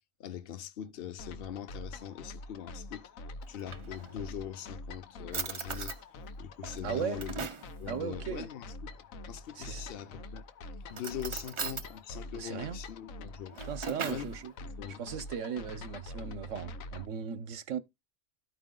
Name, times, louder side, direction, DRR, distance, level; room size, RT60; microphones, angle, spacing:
voice 1, 0.2-3.1 3.5-5.9 6.4-7.5 7.8-9.0 9.3-10.4 10.9-13.6 14.0-14.3 14.6-15.0, left 10 dB, 50° left, 0.9 m, -42 dB
sound 1, 1.2-17.1, left 2 dB, 80° left, 1.2 m, -45 dB
Drawer open or close, 3.4-4.4 4.9-5.0 5.3-6.0 6.6-7.7 9.6-10.1 10.9-11.9 13.3-14.3, right 6 dB, 55° right, 0.3 m, -39 dB
voice 2, 6.8-7.2 7.9-8.5 9.6-9.8 12.3-12.8 13.7-14.5 15.0-17.8, right 7 dB, 70° right, 1.1 m, -37 dB
13.0 x 4.8 x 3.8 m
omnidirectional pair, 1.4 m